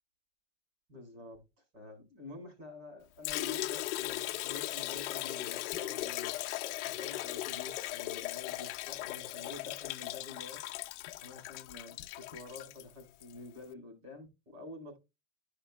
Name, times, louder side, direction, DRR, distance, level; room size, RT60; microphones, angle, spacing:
voice 1, 0.9-1.4 1.7-6.3 6.8-10.6 11.2-15.0, left 3 dB, 40° right, 5 dB, 3.7 m, -48 dB
Liquid, 3.2-13.3, left 16 dB, 55° left, 0.7 m, -38 dB
12.5 x 5.1 x 2.2 m, 0.24 s
supercardioid pair, 175°, 41 cm